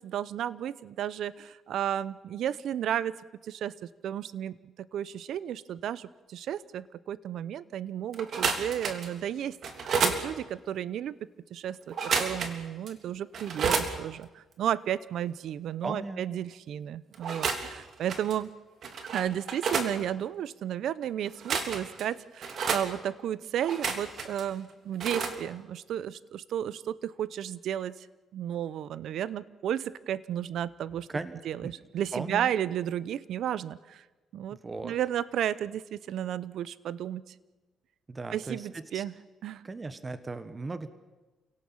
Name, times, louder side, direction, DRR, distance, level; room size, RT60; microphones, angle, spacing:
voice 1, 0.0-3.2 3.4-9.6 10.0-11.1 11.5-18.5 19.1-28.1 28.3-31.1 31.4-34.0 34.3-34.6 34.8-37.3 38.3-39.1 39.4-39.6, right 10 dB, 75° right, 18 dB, 0.8 m, -33 dB
sound 1, 8.1-9.1 9.6-10.2 11.9-12.6 12.9-13.0 13.3-13.9 17.1-17.7 18.1-18.3 18.8-19.9 21.3-22.0 22.4-22.8 23.6-24.4 25.0-25.4, right 5 dB, 60° right, 3.0 m, -30 dB
voice 2, 15.8-16.2 31.1-31.7 32.1-32.5 34.5-35.0 38.1-39.0 39.6-40.9, right 3 dB, 25° right, 12 dB, 1.4 m, -37 dB
28.5 x 18.0 x 7.3 m, 1.2 s
cardioid pair, 90°, 0 cm